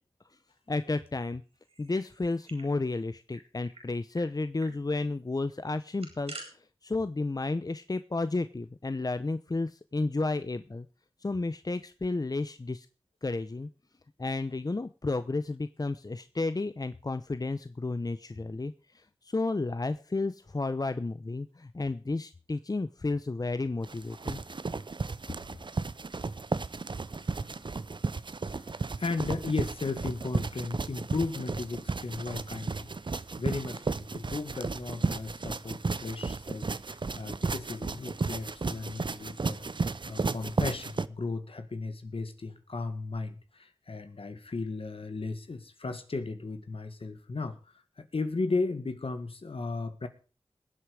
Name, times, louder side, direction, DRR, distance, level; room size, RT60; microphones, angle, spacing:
voice 1, 0.7-1.4 1.8-10.9 11.2-12.9 13.2-13.7 14.2-24.4, left 3 dB, 40° left, 12 dB, 0.8 m, -32 dB
sound 1, 1.6-2.7 3.0-3.1 3.3-3.8 4.1-4.3 4.6-4.8 5.7-6.5, right 2 dB, 85° right, 5.4 m, -47 dB
sound 2, 23.8-41.1, right 4 dB, 55° right, 0.7 m, -34 dB
voice 2, 28.6-39.7 40.1-47.6 48.0-50.1, left 3 dB, 70° left, 9 dB, 1.9 m, -35 dB
21.0 x 8.1 x 5.0 m, 0.34 s
cardioid pair, 40°, 10 cm